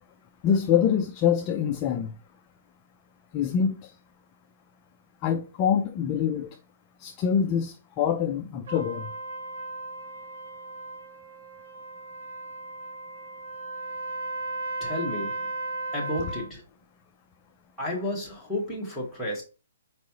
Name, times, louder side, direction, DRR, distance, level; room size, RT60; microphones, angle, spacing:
voice 1, 0.4-2.1 3.3-3.7 5.2-6.5 7.0-9.1, left 8 dB, 20° left, 0.3 m, -25 dB
Trumpet, 8.7-16.5, right 2 dB, 50° right, 1.0 m, -36 dB
voice 2, 14.8-15.5 15.9-16.6 17.8-19.4, left 1 dB, 5° left, 1.1 m, -32 dB
4.5 x 3.0 x 2.8 m
hypercardioid pair, 170°, 0 cm